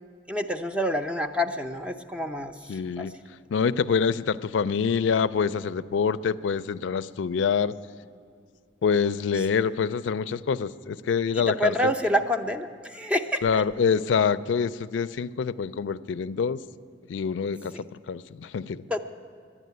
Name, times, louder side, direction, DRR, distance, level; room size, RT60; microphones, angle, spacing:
voice 1, 0.3-2.5 3.0-3.1 11.4-13.6 17.7-17.8 18.9-19.0, equal, 5° right, 6 dB, 0.6 m, -27 dB
voice 2, 2.7-3.1 3.5-7.7 8.8-11.9 13.4-16.6 17.1-17.7 18.1-18.8, left 6 dB, 85° left, 13 dB, 0.4 m, -26 dB
12.0 x 9.8 x 9.4 m, 2.3 s
head